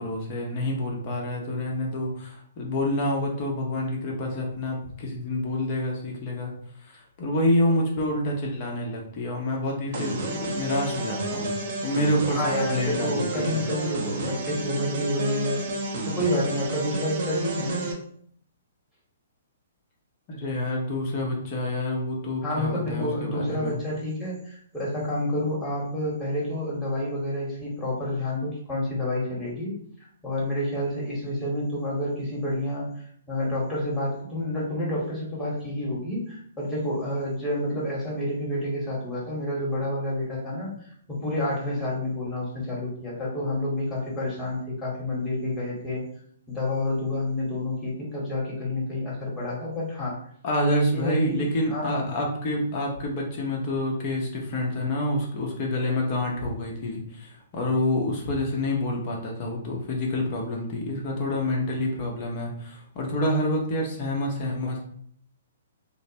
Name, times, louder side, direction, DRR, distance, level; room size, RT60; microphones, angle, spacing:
voice 1, 0.0-6.5 6.8-11.5 11.8-13.6 20.3-23.8 50.4-64.8, left 1 dB, 40° left, -1 dB, 0.9 m, -28 dB
sound 1, 9.9-17.9, right 2 dB, 55° right, 0.7 m, -31 dB
voice 2, 12.3-15.6 16.1-17.9 22.4-29.7 30.2-46.0 46.5-50.2 50.9-52.1, left 1 dB, 10° left, -6 dB, 1.3 m, -29 dB
2.8 x 2.1 x 2.8 m, 0.63 s
hypercardioid pair, 130°, 0 cm